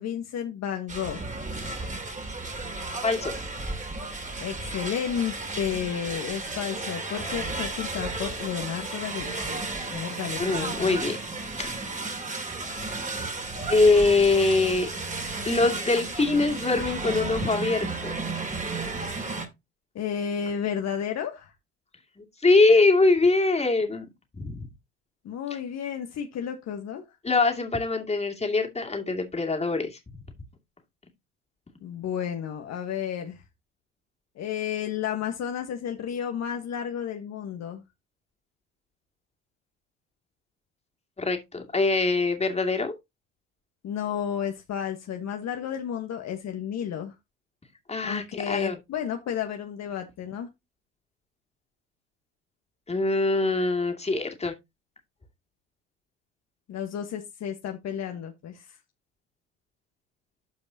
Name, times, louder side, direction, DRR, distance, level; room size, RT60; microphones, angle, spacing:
voice 1, 0.0-1.5 4.4-11.0 19.9-21.5 25.2-27.0 31.8-33.4 34.3-37.8 43.8-47.1 48.0-50.5 56.7-58.8, left 8 dB, 50° left, 1.4 m, -32 dB
sound 1, 0.9-19.5, right 3 dB, 20° right, 2.8 m, -33 dB
voice 2, 3.0-3.3 10.4-11.2 11.6-11.7 13.7-14.9 15.5-18.2 22.2-24.1 24.4-24.7 27.2-30.0 41.2-43.0 47.9-48.8 52.9-54.5, left 3 dB, 20° left, 2.5 m, -23 dB
12.5 x 5.2 x 2.8 m
hypercardioid pair, 65°, 34 cm